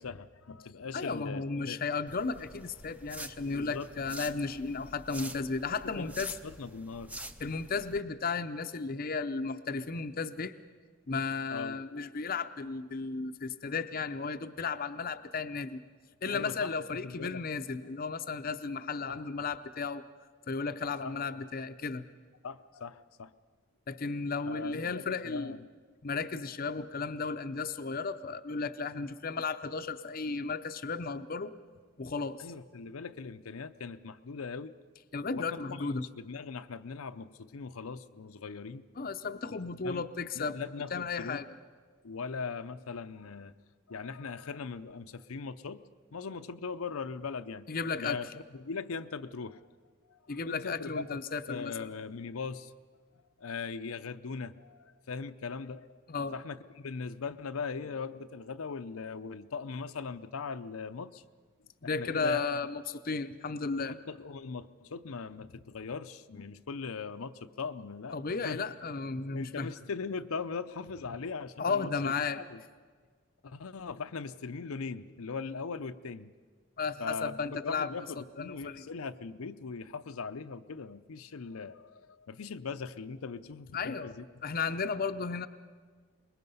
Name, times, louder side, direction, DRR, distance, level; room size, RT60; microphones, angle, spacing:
voice 1, 0.0-1.8 3.5-3.9 6.0-6.1 6.4-7.1 11.5-11.8 16.3-16.7 17.0-17.4 19.1-19.2 21.0-21.2 22.4-23.3 24.5-25.6 32.4-34.7 35.3-38.8 39.5-40.0 40.3-41.4 42.0-43.6 43.9-45.8 46.1-47.7 48.0-49.6 50.1-51.2 51.5-52.7 53.4-56.0 56.3-61.2 61.8-62.4 63.8-68.2 68.4-68.6 69.3-72.6 73.4-76.3 77.0-84.2, left 5 dB, 85° left, 9 dB, 0.6 m, -40 dB
voice 2, 0.9-6.3 7.4-10.5 11.1-15.8 16.2-20.0 20.5-22.0 23.9-25.6 26.0-31.5 32.0-32.5 35.1-36.0 39.0-40.6 40.9-41.5 47.7-48.2 50.3-51.9 56.1-56.4 61.8-63.9 68.1-69.7 71.6-72.4 76.8-77.9 78.2-78.8 83.7-84.1 84.4-85.5, left 4 dB, 45° left, 9 dB, 0.6 m, -34 dB
sound 1, 2.1-8.0, right 1 dB, 5° right, 0.5 m, -47 dB
24.0 x 21.0 x 5.5 m, 1.5 s
head